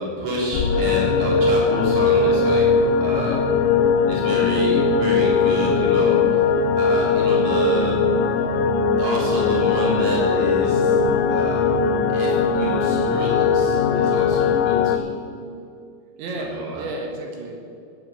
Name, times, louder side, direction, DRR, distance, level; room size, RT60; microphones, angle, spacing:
voice 1, 0.0-2.7 3.0-3.4 4.0-6.2 6.8-8.0 9.0-11.0 11.3-11.6 12.1-15.1 16.4-16.9, equal, 35° right, -4 dB, 3.9 m, -28 dB
sound 1, 0.5-15.0, left 5 dB, 80° left, 3.0 m, -19 dB
voice 2, 4.3-4.7 16.2-17.6, right 2 dB, 85° right, 1 dB, 3.9 m, -34 dB
12.5 x 8.7 x 7.6 m, 2.5 s
omnidirectional pair, 5.1 m